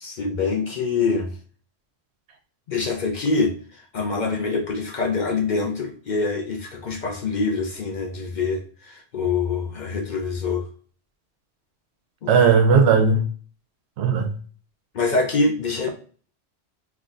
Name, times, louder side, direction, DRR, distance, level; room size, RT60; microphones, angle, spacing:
voice 1, 0.0-1.3 2.7-10.7 12.2-12.3 14.9-15.9, left 4 dB, 55° left, 0.6 m, -25 dB
voice 2, 12.3-13.2 14.0-14.3, right 5 dB, 85° right, 0.9 m, -16 dB
2.5 x 2.4 x 3.7 m
omnidirectional pair, 1.1 m